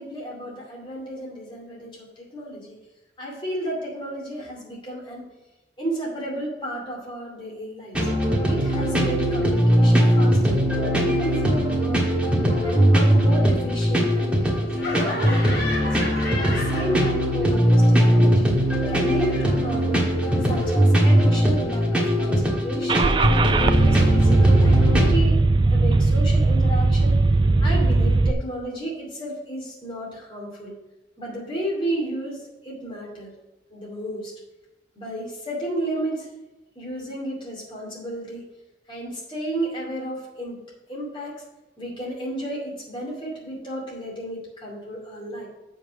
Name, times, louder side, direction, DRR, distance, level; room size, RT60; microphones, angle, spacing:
voice 1, 0.0-2.8 3.2-5.2 5.8-8.1 8.5-12.1 12.6-16.0 16.4-18.5 18.9-20.1 20.4-23.3 23.6-25.4 25.7-27.2 27.6-30.8 31.2-33.3 33.7-34.3 34.9-36.3 36.7-38.5 38.9-40.6 40.9-41.4 41.8-45.5, right 1 dB, 30° left, -3 dB, 2.5 m, -32 dB
sound 1, 7.9-25.2, equal, 5° right, 1.5 m, -20 dB
Laughter, 14.7-17.5 17.8-20.7, left 1 dB, 55° left, 3.3 m, -34 dB
Car / Engine starting, 22.9-28.3, right 2 dB, 25° right, 0.3 m, -18 dB
7.6 x 5.4 x 5.8 m, 1.0 s
head